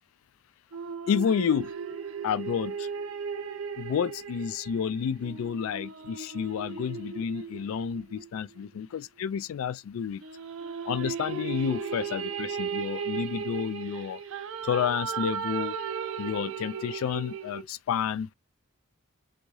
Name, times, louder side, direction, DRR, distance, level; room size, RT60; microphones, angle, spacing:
sound 1, 0.7-8.4 10.2-17.6, right 6 dB, 65° right, 0.5 m, -36 dB
voice 1, 1.1-1.7 2.2-2.9 3.8-10.2 10.9-14.2 14.6-15.7 16.2-18.3, left 7 dB, 75° left, 0.3 m, -30 dB
3.4 x 2.6 x 3.1 m
head